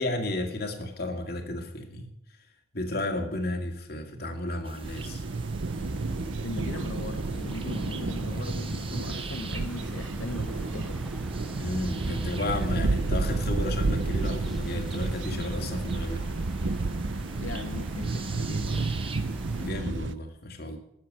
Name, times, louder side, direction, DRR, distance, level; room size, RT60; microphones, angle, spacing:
voice 1, 0.0-2.1 2.7-5.2 11.6-16.3 19.5-20.8, left 1 dB, 55° left, 4 dB, 2.3 m, -33 dB
sound 1, 4.6-19.7, right 4 dB, 30° right, 1.1 m, -45 dB
sound 2, 4.8-20.1, right 3 dB, 80° right, 0.7 m, -31 dB
sound 3, 5.7-19.9, equal, ahead, 0.5 m, -42 dB
voice 2, 6.4-11.1 17.4-19.0, left 2 dB, 90° left, 7 dB, 0.8 m, -40 dB
13.0 x 7.5 x 9.6 m, 0.75 s
head